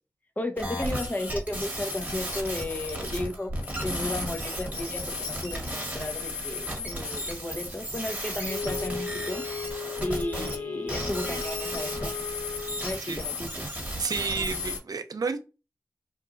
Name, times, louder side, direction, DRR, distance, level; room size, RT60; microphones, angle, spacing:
voice 1, 0.4-3.5 3.8-9.4 10.0-12.1 12.8-13.7, left 1 dB, 25° left, 0.6 m, -34 dB
sound 1, 0.6-10.6 10.9-14.8, left 1 dB, 20° right, 1.2 m, -34 dB
Wind instrument woodwind instrument, 8.5-12.9, left 5 dB, 80° left, 0.4 m, -36 dB
voice 2, 13.6-15.4, right 4 dB, 70° right, 0.3 m, -31 dB
2.9 x 2.3 x 2.4 m
wide cardioid pair, 60°, 7 cm